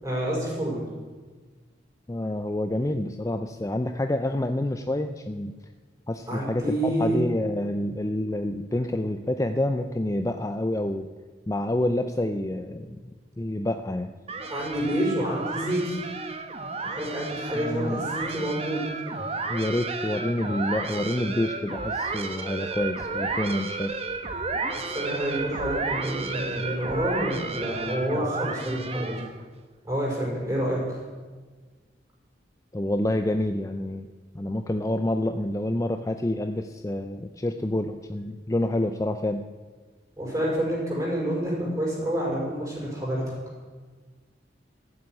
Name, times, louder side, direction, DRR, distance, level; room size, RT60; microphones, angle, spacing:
voice 1, 0.0-0.8 6.3-7.2 14.5-16.0 16.8-18.8 24.7-29.1 29.8-31.0 40.2-43.2, right 1 dB, 20° right, -4 dB, 5.7 m, -28 dB
voice 2, 2.1-5.5 6.1-11.1 11.5-14.1 17.5-18.0 19.5-23.9 32.7-34.1 34.3-39.5, left 1 dB, 20° left, 7 dB, 0.5 m, -28 dB
sound 1, 14.3-29.4, right 3 dB, 35° right, 1.2 m, -32 dB
14.0 x 7.9 x 9.5 m, 1.4 s
head